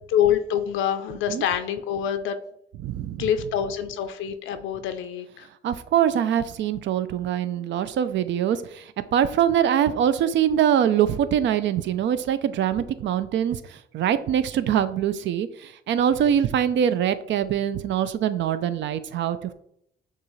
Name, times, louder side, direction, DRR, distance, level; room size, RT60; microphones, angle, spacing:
voice 1, 0.1-2.4 3.2-5.5, left 9 dB, 85° left, 8 dB, 0.5 m, -25 dB
voice 2, 2.8-3.3 5.6-19.5, right 9 dB, 70° right, 13 dB, 0.4 m, -23 dB
6.5 x 2.4 x 3.1 m, 0.70 s
cardioid pair, 90°, 20 cm